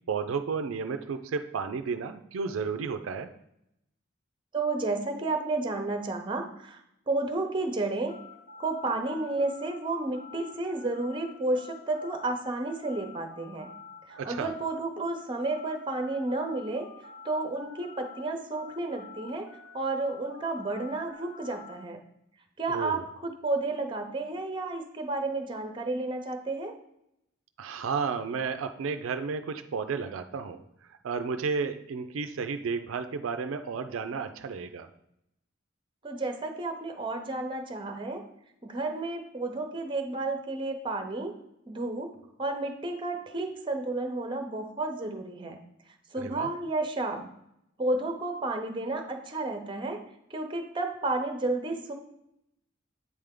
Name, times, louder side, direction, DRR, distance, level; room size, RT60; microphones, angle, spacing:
voice 1, 0.1-3.3 14.2-14.5 22.7-23.0 27.6-30.6 31.0-34.9 46.2-46.5, right 5 dB, 85° right, 9 dB, 0.4 m, -32 dB
voice 2, 4.5-6.8 7.1-8.1 8.6-13.7 14.1-16.9 17.2-19.5 19.7-22.0 22.6-26.7 36.0-38.2 38.6-41.3 41.7-42.1 42.4-45.6 46.1-47.3 47.8-50.0 50.3-51.9, right 2 dB, 25° right, 5 dB, 0.7 m, -31 dB
sound 1, 8.1-18.2 18.5-21.8, left 4 dB, 55° left, 1.3 m, -48 dB
8.3 x 3.4 x 3.6 m, 0.80 s
head